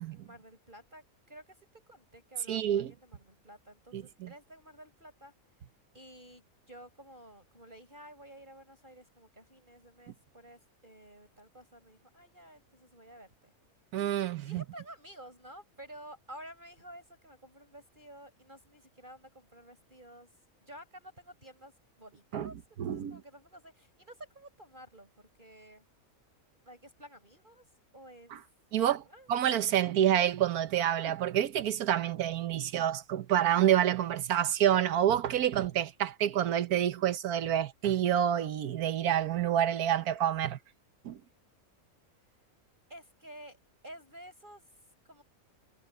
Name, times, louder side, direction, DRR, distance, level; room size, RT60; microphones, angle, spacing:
voice 1, 0.0-5.6 5.9-13.5 14.4-25.8 26.6-28.4 28.8-29.3 42.9-43.6 43.8-45.2, right 1 dB, 35° right, 7.7 m, -52 dB
voice 2, 2.5-2.9 3.9-4.3 13.9-14.6 22.3-22.5 22.8-23.2 28.7-29.0 29.3-40.6 41.0-41.2, right 10 dB, 90° right, 1.4 m, -28 dB
omnidirectional pair, 1.5 m